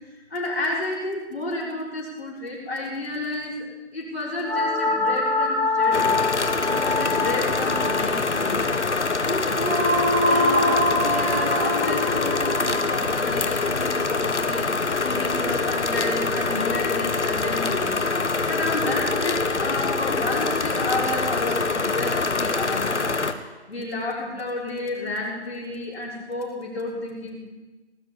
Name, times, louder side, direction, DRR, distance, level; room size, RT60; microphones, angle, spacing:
voice 1, 0.1-6.1 6.6-8.7 9.3-9.9 10.2-14.7 15.0-18.0 18.4-23.1 23.7-27.5, left 2 dB, 60° left, -2 dB, 5.9 m, -31 dB
sound 1, 4.4-14.6, left 2 dB, 10° right, 3.5 m, -25 dB
sound 2, 5.9-23.3, left 3 dB, 80° left, 1.5 m, -25 dB
18.5 x 7.1 x 9.1 m, 1.2 s
figure-of-eight pair, 170°, 35 cm